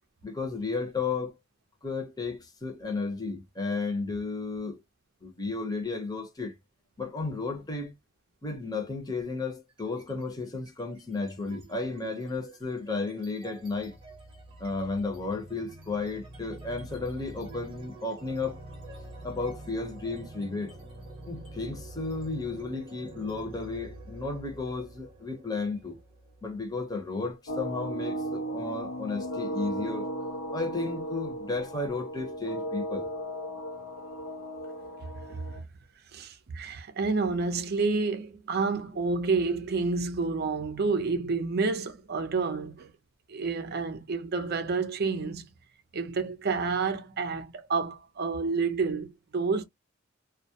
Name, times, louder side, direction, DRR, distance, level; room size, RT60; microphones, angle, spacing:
voice 1, 0.2-1.3 1.8-4.8 5.2-6.5 7.0-7.9 8.4-14.0 14.6-18.6 19.2-20.8 21.3-26.0 26.4-30.1 30.5-33.1, left 3 dB, 20° left, 0.7 m, -33 dB
sound 1, 9.7-10.2 10.6-27.2, right 2 dB, 25° right, 0.9 m, -47 dB
sound 2, 27.5-35.6, equal, 75° left, 0.6 m, -36 dB
voice 2, 35.3-35.6 36.1-42.9 43.3-45.4 45.9-49.7, right 4 dB, 50° right, 0.5 m, -29 dB
2.3 x 2.0 x 2.7 m
head